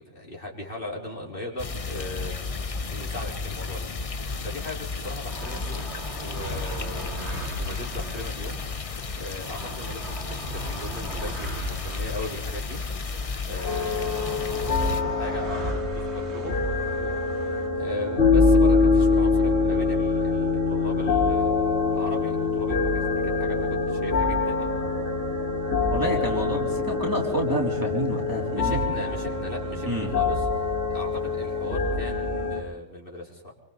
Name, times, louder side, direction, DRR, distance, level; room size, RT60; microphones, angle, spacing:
voice 1, 0.0-2.4 2.9-3.9 4.4-8.6 9.2-12.8 13.4-24.7 28.5-33.5, left 1 dB, 50° left, -2 dB, 4.5 m, -38 dB
sound 1, 1.6-15.0, left 4 dB, 35° left, 0.8 m, -33 dB
sound 2, 5.3-17.7, right 2 dB, 65° right, 3.1 m, -38 dB
sound 3, 13.6-32.6, left 4 dB, 65° left, 4.9 m, -24 dB
voice 2, 25.9-28.8 29.9-30.1, right 1 dB, 15° right, -2 dB, 3.6 m, -28 dB
28.0 x 24.0 x 4.1 m, 0.82 s
omnidirectional pair, 1.2 m